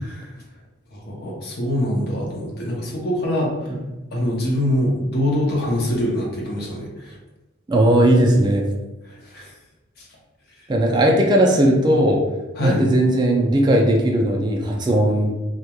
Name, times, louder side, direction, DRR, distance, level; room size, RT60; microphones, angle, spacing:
voice 1, 0.9-3.7 4.1-7.2 9.1-9.5 10.0-10.1 12.6-12.8, left 1 dB, 50° left, -3 dB, 0.6 m, -24 dB
voice 2, 7.7-8.7 10.7-12.2 12.6-15.4, right 1 dB, 20° right, 0 dB, 0.3 m, -17 dB
2.9 x 2.2 x 2.2 m, 1.0 s
head